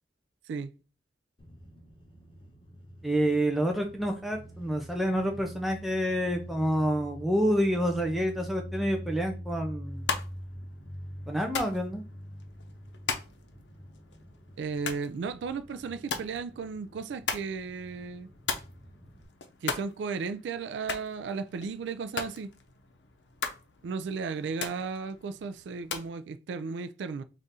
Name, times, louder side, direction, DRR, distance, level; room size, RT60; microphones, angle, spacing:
sound 1, 1.4-19.2, equal, 30° left, 0.9 m, -45 dB
voice 1, 3.0-10.1 11.3-12.0, equal, ahead, 0.4 m, -28 dB
sound 2, 9.8-26.1, left 5 dB, 85° left, 0.6 m, -39 dB
voice 2, 14.6-18.3 19.6-22.5 23.8-27.2, right 5 dB, 85° right, 0.3 m, -35 dB
3.6 x 2.5 x 4.0 m
head